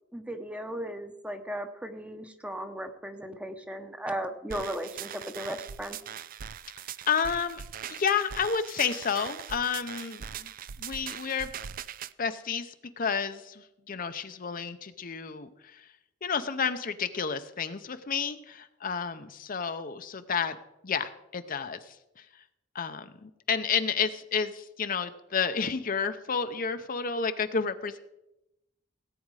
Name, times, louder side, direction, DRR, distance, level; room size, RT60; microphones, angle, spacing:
voice 1, 0.1-6.0, right 1 dB, 5° right, 7 dB, 0.9 m, -36 dB
sound 1, 4.5-12.1, right 9 dB, 45° right, 0.4 m, -41 dB
voice 2, 7.1-7.6 7.9-10.5 10.8-11.5 12.2-15.9 16.2-20.6 20.8-22.4 22.7-28.0, left 6 dB, 45° left, 9 dB, 0.7 m, -31 dB
18.0 x 8.6 x 4.8 m, 0.90 s
head